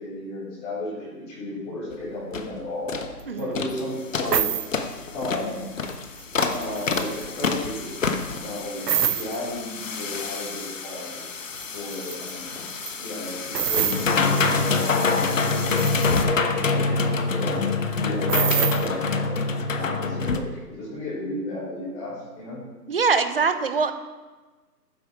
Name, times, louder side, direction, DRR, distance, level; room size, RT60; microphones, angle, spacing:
voice 1, 0.0-2.9 3.4-4.4 5.1-5.7 6.5-7.9 8.3-11.4 11.7-12.7 13.0-16.8 17.4-17.6 17.9-19.4 19.7-22.6, left 1 dB, 15° left, -8 dB, 4.5 m, -34 dB
sound 1, 1.9-2.0 2.3-2.5 2.9-3.1 3.5-3.8 4.1-20.4, left 4 dB, 50° left, 1.3 m, -26 dB
sound 2, 3.4-3.5 4.3-4.7 5.9-6.2 6.5-7.5 8.9-9.4 11.6-11.7 11.9-12.3 12.7-12.9 13.5-14.0 14.8-14.9 15.2-16.1 18.3-18.9, right 8 dB, 80° right, 0.7 m, -25 dB
voice 2, 22.9-23.9, right 5 dB, 35° right, 9 dB, 0.9 m, -22 dB
12.5 x 9.4 x 4.7 m, 1.3 s
figure-of-eight pair, 160°, 49 cm